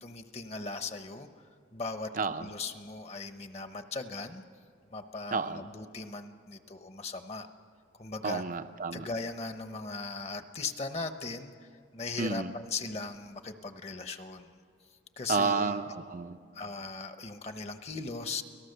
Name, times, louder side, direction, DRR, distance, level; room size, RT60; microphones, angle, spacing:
voice 1, 0.0-1.3 1.7-2.1 2.4-4.4 4.9-7.5 8.0-8.4 8.9-11.5 11.9-14.5 15.2-15.8 16.5-18.4, left 3 dB, 35° left, 8 dB, 0.9 m, -38 dB
voice 2, 2.2-2.5 5.3-5.6 8.2-9.1 12.2-12.5 15.3-16.4, right 4 dB, 45° right, 9 dB, 0.6 m, -30 dB
30.0 x 18.0 x 6.7 m, 2.2 s
head